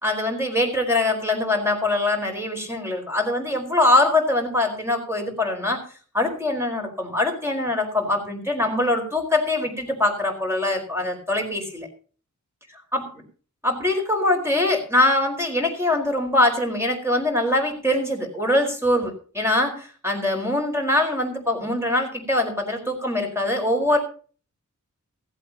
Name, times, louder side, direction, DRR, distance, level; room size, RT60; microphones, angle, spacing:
voice 1, 0.0-5.8 6.1-11.9 12.9-13.2 13.6-24.0, left 1 dB, 10° right, 2 dB, 4.7 m, -23 dB
16.0 x 15.5 x 2.9 m, 0.40 s
wide cardioid pair, 100°, 31 cm